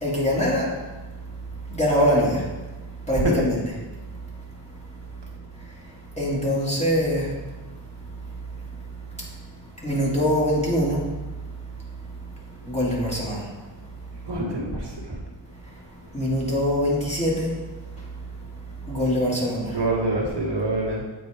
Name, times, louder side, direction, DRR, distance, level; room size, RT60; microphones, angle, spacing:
voice 1, 0.0-0.7 1.7-2.4 3.1-3.6 6.2-7.3 9.8-11.0 12.7-13.4 16.1-17.5 18.9-19.7, equal, 15° left, -6 dB, 1.9 m, -23 dB
voice 2, 14.3-15.2 19.7-21.0, right 2 dB, 55° right, -4 dB, 1.4 m, -26 dB
8.0 x 4.2 x 3.4 m, 1.2 s
wide cardioid pair, 65°, 49 cm